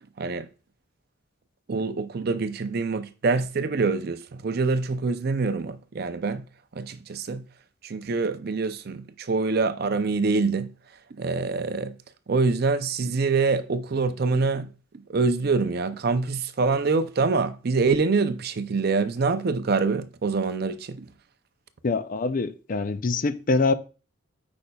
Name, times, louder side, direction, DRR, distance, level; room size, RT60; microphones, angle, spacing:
voice 1, 0.2-0.5 1.7-6.5 6.7-7.5 7.8-10.7 11.1-12.0 12.3-21.1, right 4 dB, 50° right, 0.5 m, -25 dB
voice 2, 21.8-23.7, left 3 dB, 40° left, 0.4 m, -24 dB
8.5 x 5.3 x 2.3 m
head